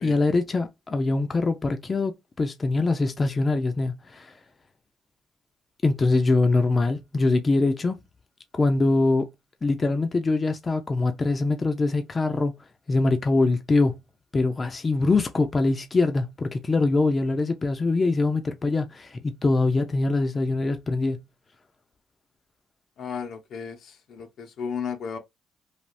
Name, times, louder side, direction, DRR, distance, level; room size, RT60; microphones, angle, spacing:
voice 1, 0.0-4.3 5.8-8.0 8.5-9.3 9.6-12.5 12.9-14.0 14.3-21.2, left 3 dB, 30° left, 0.5 m, -23 dB
voice 2, 23.0-25.2, left 6 dB, 70° left, 0.7 m, -34 dB
3.3 x 2.3 x 2.6 m
cardioid pair, 90°, 0 cm